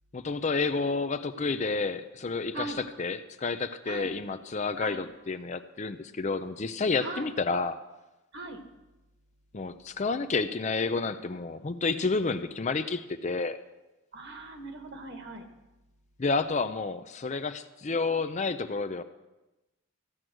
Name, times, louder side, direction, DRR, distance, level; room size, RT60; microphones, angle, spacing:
voice 1, 0.1-2.7 3.0-7.8 9.5-13.6 16.2-19.0, left 4 dB, 35° left, 10 dB, 0.5 m, -30 dB
voice 2, 14.1-15.5, right 2 dB, 55° right, 5 dB, 1.7 m, -39 dB
14.5 x 9.1 x 6.2 m, 1.0 s
head